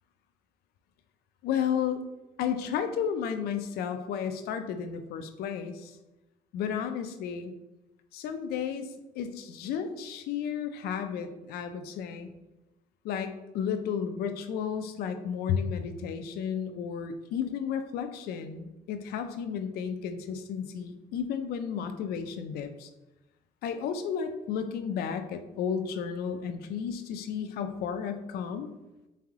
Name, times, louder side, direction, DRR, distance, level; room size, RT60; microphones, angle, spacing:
voice 1, 1.4-2.0 2.4-6.0 6.5-7.5 8.1-8.9 9.1-12.3 13.0-22.9 23.6-28.7, left 7 dB, 70° left, 8 dB, 0.4 m, -33 dB
3.6 x 3.3 x 3.5 m, 1.0 s
cardioid pair, 175°, 17 cm